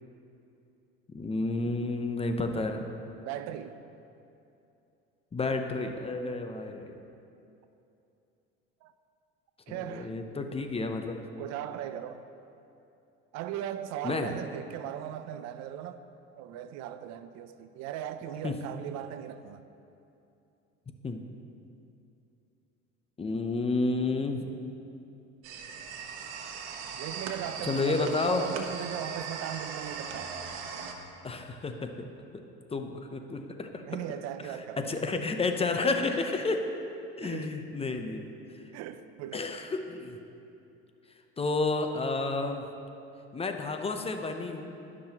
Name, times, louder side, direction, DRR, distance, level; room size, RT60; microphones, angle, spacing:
voice 1, 1.1-2.9 5.3-6.9 9.7-11.2 14.0-14.4 18.4-18.6 21.0-21.2 23.2-24.5 27.6-28.5 31.2-32.1 32.7-33.8 34.4-36.6 37.2-38.4 39.3-40.2 41.4-42.6 43.3-44.7, left 3 dB, 20° left, 5 dB, 0.7 m, -31 dB
voice 2, 3.2-3.8 8.8-8.9 9.7-10.1 11.4-12.2 13.3-16.0 16.4-19.7 27.0-30.3 33.8-35.3 37.2-37.5 38.7-39.5, right 10 dB, 65° right, 11 dB, 0.5 m, -38 dB
sound 1, 25.4-30.9, right 5 dB, 80° right, 1.1 m, -39 dB
18.0 x 6.2 x 2.9 m, 2.8 s
supercardioid pair, 95°, 29 cm